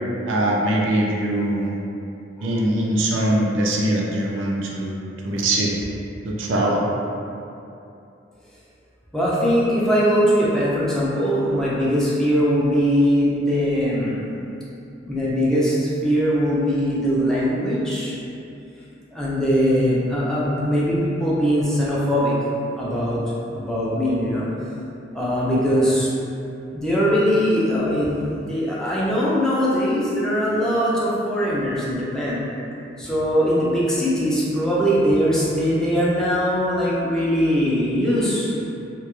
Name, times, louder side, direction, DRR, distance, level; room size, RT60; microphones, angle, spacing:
voice 1, 0.3-1.7 2.4-5.0 5.2-5.7 6.2-6.8, right 1 dB, 90° right, -2 dB, 0.4 m, -22 dB
voice 2, 9.1-14.3 15.1-18.2 19.1-22.4 22.7-23.2 23.5-24.5 25.1-26.1 26.7-32.5 33.0-38.5, equal, 5° left, -8 dB, 0.3 m, -21 dB
2.1 x 2.0 x 2.9 m, 2.7 s
head